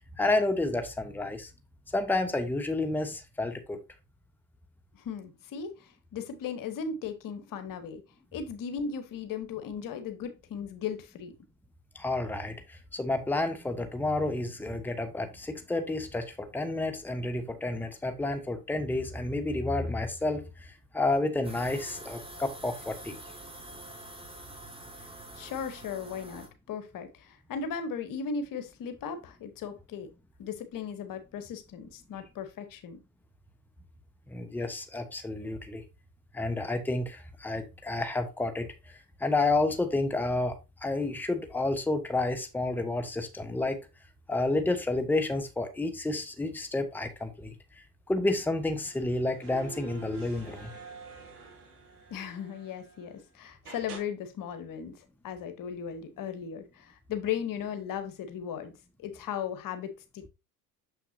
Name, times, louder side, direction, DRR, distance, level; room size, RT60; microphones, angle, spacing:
voice 1, 0.2-1.5 1.9-3.8 11.9-23.2 34.3-35.8 36.3-40.6 40.8-43.8 44.3-47.5 48.1-50.7, left 2 dB, 5° left, 1.0 m, -30 dB
voice 2, 4.9-8.0 8.3-11.3 25.0-30.1 30.4-33.0 52.1-58.7 59.0-60.3, left 7 dB, 45° left, 1.1 m, -37 dB
sound 1, 21.4-26.5, right 1 dB, 10° right, 1.8 m, -46 dB
sound 2, 48.8-53.2 53.6-54.0, right 3 dB, 80° right, 2.1 m, -47 dB
6.5 x 5.8 x 2.7 m
hypercardioid pair, 65°, 46 cm